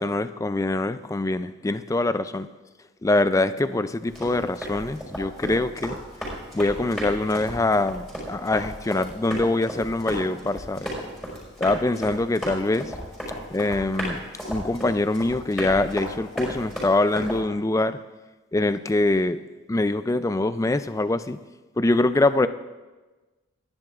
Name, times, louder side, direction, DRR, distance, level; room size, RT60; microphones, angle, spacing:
voice 1, 0.0-2.5 3.0-6.0 6.5-10.9 11.6-12.9 13.5-18.0 18.5-19.4 19.7-21.4 21.8-22.5, left 2 dB, 15° left, 12 dB, 0.3 m, -24 dB
Run, 4.1-17.4, equal, ahead, 4.9 m, -34 dB
29.5 x 10.5 x 2.4 m, 1.2 s
head